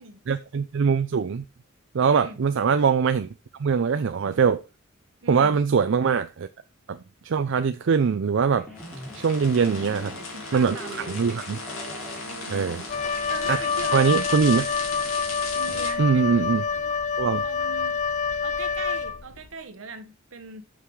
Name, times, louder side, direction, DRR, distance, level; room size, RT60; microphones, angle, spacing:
voice 1, 0.3-1.4 1.9-3.3 3.6-4.6 5.3-6.5 6.9-7.0 7.2-8.7 9.1-10.1 10.5-10.8 11.1-11.6 12.5-12.8 13.5-13.6 13.9-14.7 16.0-16.6 17.2-17.4, right 6 dB, 65° right, 0.4 m, -22 dB
voice 2, 2.1-2.4 5.2-5.6 9.5-11.2 12.2-12.7 13.3-14.1 15.5-16.6 17.4-18.0 18.4-20.6, right 3 dB, 80° right, 1.1 m, -40 dB
sound 1, 8.6-16.9, equal, 5° left, 1.8 m, -44 dB
sound 2, 8.8-15.9, left 3 dB, 85° left, 2.6 m, -37 dB
Wind instrument woodwind instrument, 12.9-19.5, left 5 dB, 35° left, 0.4 m, -27 dB
6.5 x 5.7 x 4.6 m
head